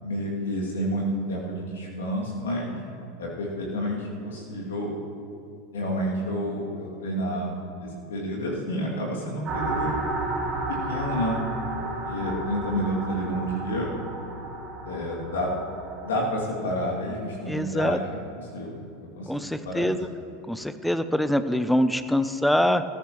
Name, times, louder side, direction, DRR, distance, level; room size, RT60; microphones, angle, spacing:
voice 1, 0.0-2.8 3.2-4.9 5.7-7.6 7.8-10.0 10.7-11.4 11.8-13.9 14.8-15.5 16.0-18.2 18.5-18.8 19.2-19.3 19.6-19.9, equal, 65° left, -3 dB, 2.4 m, -29 dB
sound 1, 9.4-16.2, right 2 dB, 35° right, 3.0 m, -32 dB
voice 2, 17.5-18.0 19.3-20.1 20.5-22.8, equal, ahead, 12 dB, 0.5 m, -24 dB
19.0 x 14.0 x 3.0 m, 2.4 s
figure-of-eight pair, 85°, 0 cm